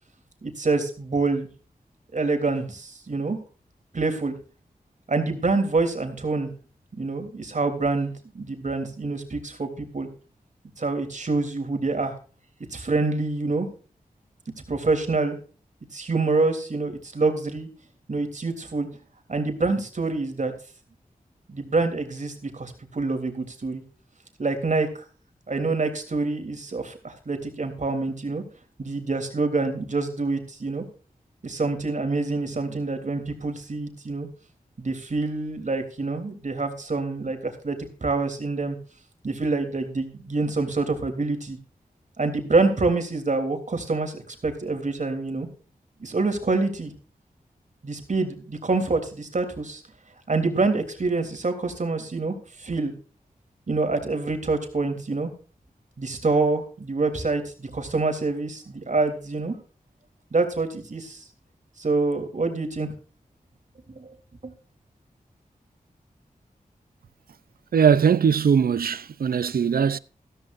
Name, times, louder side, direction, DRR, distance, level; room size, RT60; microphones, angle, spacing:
voice 1, 0.4-1.5 2.1-3.4 3.9-4.3 5.1-6.5 7.0-10.1 10.8-12.1 12.7-13.7 14.7-15.4 15.9-17.7 18.1-18.9 19.3-20.5 21.5-23.8 24.4-25.0 25.5-28.4 28.8-30.8 31.4-34.3 34.8-38.8 39.2-41.6 42.2-45.5 46.0-46.9 47.8-49.8 50.3-52.9 53.7-55.3 56.0-59.5 60.3-61.2 61.8-62.9 63.9-64.1 64.4-64.5, right 3 dB, 55° right, 3.4 m, -26 dB
voice 2, 67.7-70.0, right 7 dB, 80° right, 0.6 m, -20 dB
14.5 x 14.0 x 2.6 m
wide cardioid pair, 60°, 15 cm